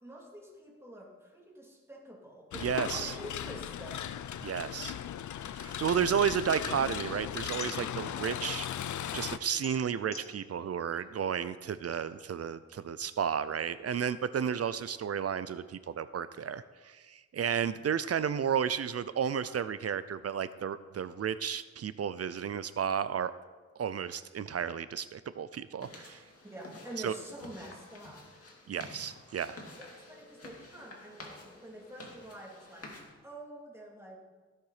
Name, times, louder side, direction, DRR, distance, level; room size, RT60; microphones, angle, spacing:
voice 1, 0.0-4.2 26.4-28.3 29.8-34.2, right 1 dB, 10° right, -3 dB, 2.9 m, -47 dB
sound 1, 2.5-9.4, left 10 dB, 85° left, 0.5 m, -37 dB
voice 2, 2.6-3.1 4.4-4.9 5.5-8.7 9.1-23.3 23.8-26.2 27.0-27.1 28.7-29.6, right 8 dB, 55° right, 14 dB, 0.5 m, -32 dB
sound 2, 4.0-5.5 5.8-8.3 8.8-11.9, left 3 dB, 35° left, 1.3 m, -49 dB
sound 3, 25.8-33.0, left 2 dB, 50° left, 2.4 m, -50 dB
15.5 x 6.7 x 5.0 m, 1.3 s
wide cardioid pair, 90°, 29 cm